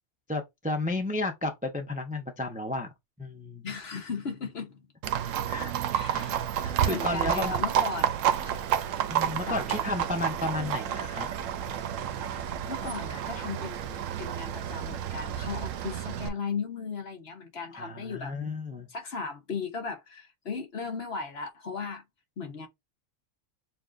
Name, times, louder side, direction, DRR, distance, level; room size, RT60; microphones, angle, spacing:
voice 1, 0.3-2.9 3.2-3.6 5.5-5.7 6.1-6.3 6.6-7.6 9.1-11.3 17.7-18.9, left 2 dB, 10° right, 0.5 m, -32 dB
voice 2, 3.6-4.9 5.9-6.4 6.9-8.1 8.4-8.6 9.5-9.6 12.3-12.4 12.7-18.3 18.9-22.0 22.4-22.7, left 5 dB, 55° left, 1.2 m, -36 dB
Livestock farm animals working animals, 5.0-16.3, right 10 dB, 80° right, 1.0 m, -30 dB
6.9 x 2.7 x 2.5 m
omnidirectional pair, 1.3 m